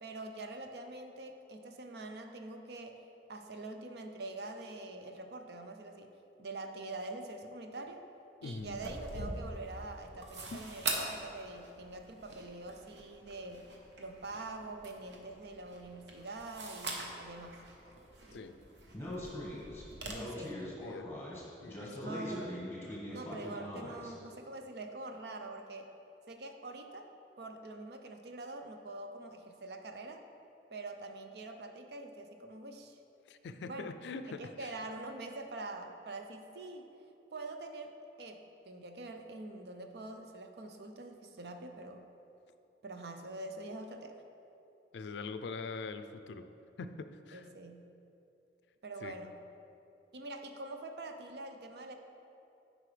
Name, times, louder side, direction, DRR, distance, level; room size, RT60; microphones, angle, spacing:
voice 1, 0.0-3.0 3.3-6.1 6.4-8.0 8.4-13.7 14.0-17.6 20.1-20.6 22.0-22.6 23.1-25.9 26.3-27.1 27.4-30.2 30.7-33.0 33.6-33.9 34.3-36.9 37.3-37.9 38.2-42.0 42.8-44.2 47.3-47.9 48.8-49.4 50.1-52.0, right 2 dB, 65° right, 5 dB, 0.6 m, -45 dB
voice 2, 8.4-8.8 10.5-10.6 18.3-18.5 20.3-21.1 21.6-22.1 33.3-34.7 44.9-46.4 46.8-47.5 49.0-49.1, left 4 dB, 75° left, 10 dB, 0.4 m, -43 dB
sound 1, 8.6-20.1, right 2 dB, 85° right, 0.9 m, -44 dB
Speech, 18.9-24.1, left 1 dB, 15° left, 1.4 m, -42 dB
9.5 x 5.1 x 3.3 m, 2.9 s
head